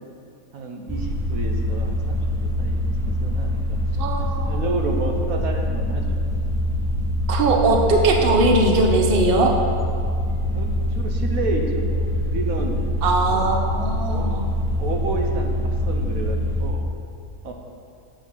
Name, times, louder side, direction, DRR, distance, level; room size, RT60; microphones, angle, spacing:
voice 1, 0.5-3.8 4.3-6.2 10.5-12.7 13.3-13.5 14.1-14.3 14.8-16.8 17.4-17.5, right 3 dB, 70° right, 2 dB, 1.2 m, -30 dB
sound 1, 0.9-16.7, equal, 5° left, 0.7 m, -24 dB
voice 2, 4.0-4.6 7.3-9.5 13.0-14.4, right 2 dB, 45° right, 1 dB, 0.9 m, -20 dB
7.6 x 7.0 x 5.5 m, 2.6 s
omnidirectional pair, 1.6 m